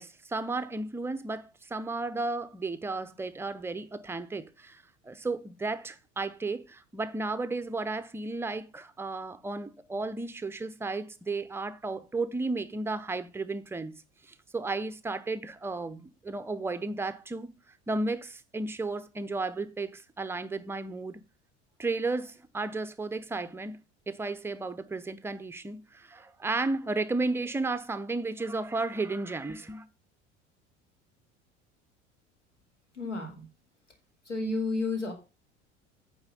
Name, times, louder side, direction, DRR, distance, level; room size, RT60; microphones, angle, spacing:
voice 1, 0.0-13.9 14.3-17.5 17.9-21.2 21.8-23.8 24.1-29.8, right 3 dB, 5° right, 0.5 m, -33 dB
voice 2, 32.9-33.4 34.3-35.1, left 3 dB, 85° left, 1.9 m, -31 dB
8.9 x 3.6 x 6.8 m
figure-of-eight pair, 65°, 36 cm